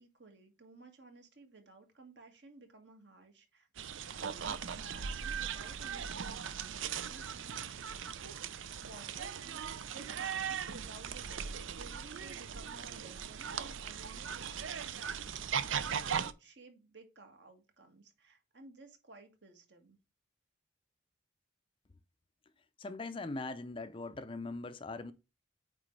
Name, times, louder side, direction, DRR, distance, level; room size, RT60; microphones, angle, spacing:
voice 1, 0.0-3.7 4.2-7.5 7.8-8.4 8.7-20.0, right 3 dB, 60° right, 1.8 m, -56 dB
sound 1, 3.8-16.3, right 7 dB, 75° right, 0.6 m, -39 dB
voice 2, 22.8-25.1, left 3 dB, 25° left, 0.5 m, -41 dB
8.9 x 3.7 x 3.2 m
head